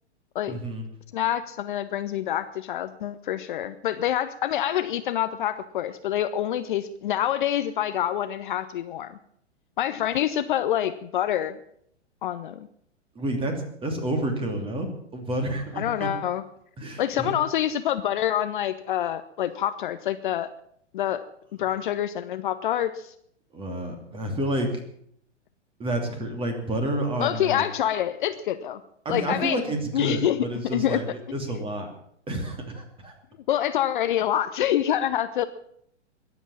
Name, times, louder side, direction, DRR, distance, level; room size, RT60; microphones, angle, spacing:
voice 1, 0.5-0.9 13.1-16.1 16.8-17.4 23.5-24.8 25.8-27.6 29.0-31.9 32.3-33.1, right 1 dB, 15° right, 5 dB, 2.8 m, -29 dB
voice 2, 1.1-9.2 9.8-11.6 12.2-12.7 15.8-16.4 17.0-20.5 20.9-21.2 21.6-23.1 27.2-28.8 29.1-29.6 29.9-30.5 30.7-31.0 33.5-35.4, left 11 dB, 45° left, 11 dB, 0.8 m, -26 dB
21.5 x 8.2 x 7.3 m, 0.68 s
figure-of-eight pair, 110°, 35 cm